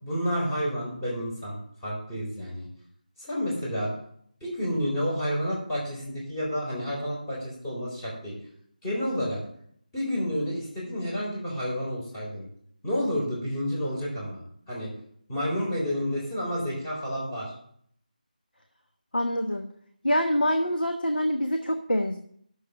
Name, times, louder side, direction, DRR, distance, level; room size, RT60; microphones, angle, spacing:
voice 1, 0.0-2.7 3.2-3.9 4.4-8.4 8.8-9.4 9.9-12.5 12.8-14.4 14.7-14.9 15.3-17.5, equal, 15° left, -6 dB, 3.9 m, -30 dB
voice 2, 19.1-19.7 20.0-22.2, equal, 85° left, 4 dB, 1.1 m, -25 dB
9.8 x 6.8 x 7.0 m, 0.67 s
figure-of-eight pair, 165°, 5 cm